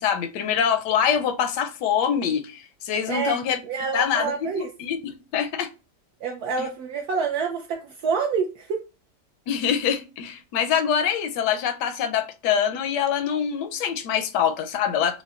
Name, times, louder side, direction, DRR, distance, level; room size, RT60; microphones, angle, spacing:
voice 1, 0.0-3.6 3.9-5.7 6.6-6.7 9.5-15.2, left 8 dB, 90° left, 1.2 m, -25 dB
voice 2, 3.1-3.4 3.6-4.7 6.2-8.8, right 5 dB, 70° right, 1.1 m, -27 dB
5.9 x 2.1 x 2.4 m
omnidirectional pair, 1.8 m